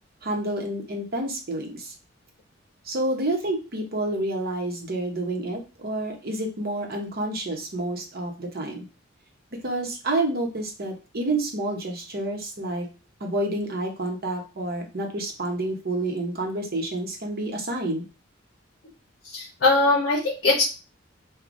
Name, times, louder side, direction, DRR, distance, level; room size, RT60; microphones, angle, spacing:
voice 1, 0.2-1.9 2.9-8.8 9.6-12.9 13.2-18.0, right 2 dB, 50° right, 2 dB, 0.9 m, -29 dB
voice 2, 19.2-20.6, left 3 dB, 55° left, -1 dB, 0.8 m, -21 dB
4.6 x 2.3 x 2.6 m, 0.32 s
head